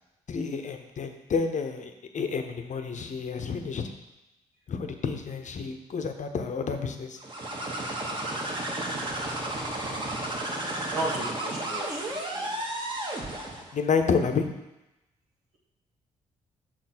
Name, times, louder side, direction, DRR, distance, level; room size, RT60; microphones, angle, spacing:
voice 1, 0.3-3.9 4.7-7.2 13.7-14.5, left 5 dB, 50° left, 6 dB, 0.8 m, -29 dB
sound 1, 7.2-13.7, right 1 dB, 30° right, 1.5 m, -33 dB
voice 2, 10.8-12.5, right 2 dB, 80° right, -4 dB, 1.8 m, -34 dB
6.1 x 4.2 x 4.3 m, 0.95 s
hypercardioid pair, 50°, 16 cm